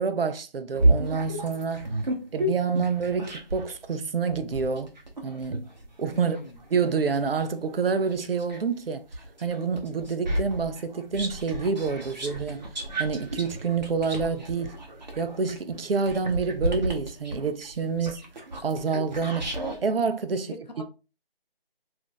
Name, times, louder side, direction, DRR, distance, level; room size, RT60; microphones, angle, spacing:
voice 1, 0.0-1.9 2.3-4.9 5.2-5.7 6.0-6.4 6.7-9.0 9.4-12.7 13.0-14.8 15.2-18.2 18.6-19.5 19.8-20.8, right 5 dB, 75° right, 0.5 m, -28 dB
sound 1, 0.7-3.7 4.3-8.6 9.1-19.8, right 1 dB, 50° right, 0.8 m, -31 dB
voice 2, 6.1-6.6 20.3-20.8, left 2 dB, 50° left, 0.6 m, -42 dB
2.6 x 2.3 x 3.7 m
figure-of-eight pair, 170°, 29 cm